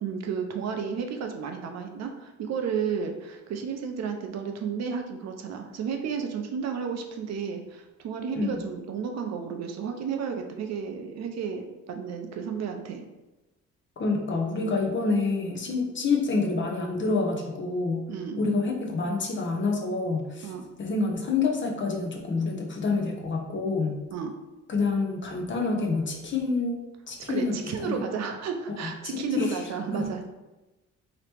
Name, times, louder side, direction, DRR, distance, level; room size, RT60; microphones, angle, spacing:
voice 1, 0.0-13.0 18.1-18.4 20.4-20.6 24.1-24.3 27.3-30.3, right 6 dB, 60° right, 4 dB, 0.5 m, -32 dB
voice 2, 14.0-18.0 18.4-20.5 20.8-24.0 24.7-26.8 27.1-28.0 28.7-28.8 29.1-29.6 29.9-30.0, left 3 dB, 40° left, 1 dB, 0.7 m, -27 dB
2.9 x 2.9 x 3.4 m, 1.1 s
cardioid pair, 90°, 30 cm